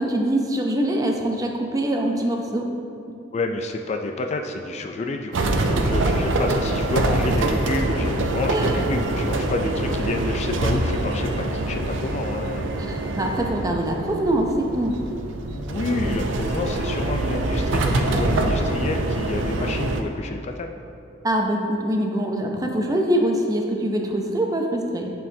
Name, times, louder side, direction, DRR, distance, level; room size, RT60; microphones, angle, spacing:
voice 1, 0.0-2.7 8.5-8.8 12.8-15.0 21.2-25.1, right 1 dB, 20° right, 1 dB, 0.5 m, -24 dB
voice 2, 3.3-12.8 15.5-20.7, left 3 dB, 35° left, 4 dB, 0.3 m, -29 dB
sound 1, 5.3-20.0, right 2 dB, 75° right, 0.5 m, -24 dB
10.5 x 4.6 x 2.7 m, 2.5 s
head